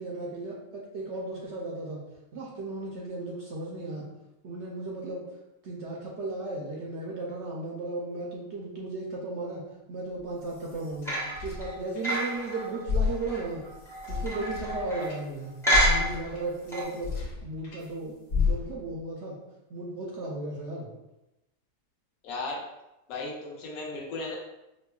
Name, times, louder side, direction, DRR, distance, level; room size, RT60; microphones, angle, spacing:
voice 1, 0.0-2.0 2.3-4.1 4.4-5.2 5.6-9.6 9.9-11.2 11.4-13.6 14.1-15.5 15.8-17.1 17.4-19.4 19.7-20.9, right 2 dB, 65° right, -3 dB, 0.7 m, -35 dB
sound 1, 10.2-12.5 12.8-17.9 18.3-19.0, left 5 dB, 90° left, 1.4 m, -32 dB
sound 2, 11.1-15.2 15.6-16.4 16.7-16.8, right 1 dB, 5° left, 0.4 m, -29 dB
voice 2, 22.2-22.6 23.1-24.4, left 3 dB, 70° left, -3 dB, 1.1 m, -35 dB
5.1 x 2.1 x 2.3 m, 0.95 s
omnidirectional pair, 1.7 m